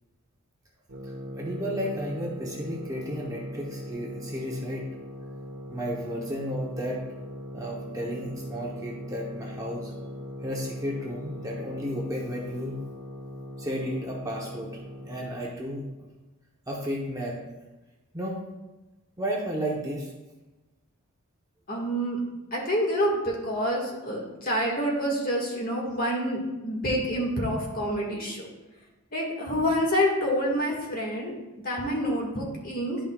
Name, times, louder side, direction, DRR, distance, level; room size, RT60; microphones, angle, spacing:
sound 1, 0.9-15.5, equal, 90° right, 1.1 m, -40 dB
voice 1, 1.4-4.9 5.7-7.0 7.5-9.9 10.4-12.8 13.6-14.7 15.0-16.1 16.7-17.4 18.1-18.4 19.2-20.1, equal, 15° right, -3 dB, 0.9 m, -33 dB
voice 2, 21.7-22.2 22.5-28.5 29.1-33.0, equal, 40° left, -2 dB, 1.7 m, -27 dB
11.0 x 5.4 x 2.3 m, 1.1 s
head